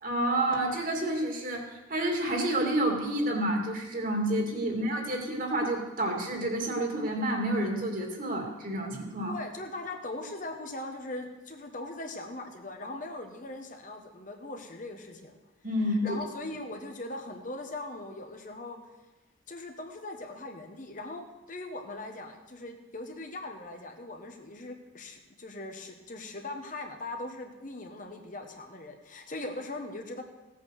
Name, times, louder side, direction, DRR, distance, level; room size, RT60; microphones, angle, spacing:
voice 1, 0.0-9.4 15.6-16.2, right 1 dB, 45° right, 2 dB, 2.5 m, -29 dB
voice 2, 9.3-15.3 16.0-18.8 19.5-30.2, left 2 dB, 40° left, 4 dB, 1.3 m, -40 dB
16.5 x 8.4 x 6.5 m, 1.1 s
head